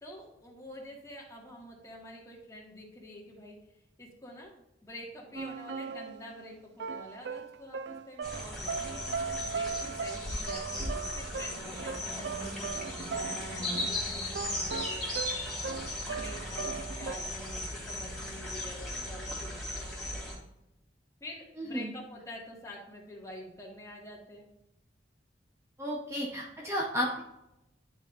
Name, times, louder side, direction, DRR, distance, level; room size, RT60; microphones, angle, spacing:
voice 1, 0.0-3.6 4.0-4.5 4.8-8.9 9.4-15.1 16.1-19.7 21.2-24.5, left 1 dB, 20° left, -3 dB, 1.9 m, -47 dB
sound 1, 5.3-6.4 6.8-13.9 14.2-17.2, right 5 dB, 70° right, 0.4 m, -38 dB
sound 2, 8.2-20.3, left 1 dB, ahead, 2.7 m, -37 dB
voice 2, 21.6-21.9 25.8-27.2, equal, 15° right, -1 dB, 0.9 m, -33 dB
11.0 x 5.4 x 2.5 m, 0.89 s
head